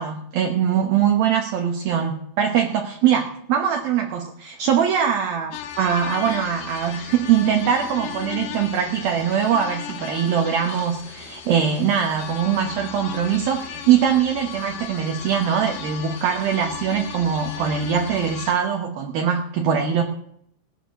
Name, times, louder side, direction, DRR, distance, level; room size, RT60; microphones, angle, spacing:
voice 1, 0.0-20.0, right 8 dB, 75° right, 3 dB, 2.2 m, -22 dB
sound 1, 5.5-18.5, left 9 dB, 85° left, 4.2 m, -36 dB
19.0 x 9.8 x 6.3 m, 0.71 s
omnidirectional pair, 5.8 m